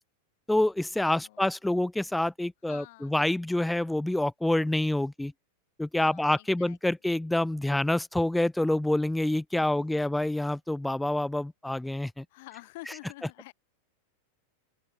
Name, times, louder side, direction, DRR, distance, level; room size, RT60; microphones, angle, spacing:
voice 1, 0.5-5.3 5.8-12.2, left 1 dB, 5° left, 0.6 m, -27 dB
voice 2, 1.0-1.5 2.7-3.2 6.0-6.8 9.5-10.2 12.3-13.5, left 21 dB, 50° left, 6.8 m, -49 dB
open air
figure-of-eight pair, 90°, 0 cm